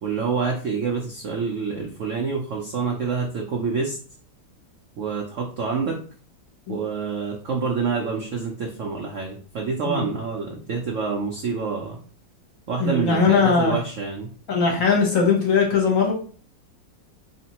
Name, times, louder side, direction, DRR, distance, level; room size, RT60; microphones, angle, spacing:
voice 1, 0.0-4.0 5.0-6.0 6.7-12.0 12.7-14.3, right 5 dB, 65° right, -1 dB, 0.7 m, -27 dB
voice 2, 12.8-13.7 14.5-16.1, left 5 dB, 55° left, -1 dB, 1.2 m, -20 dB
4.2 x 3.1 x 2.9 m, 0.43 s
omnidirectional pair, 2.0 m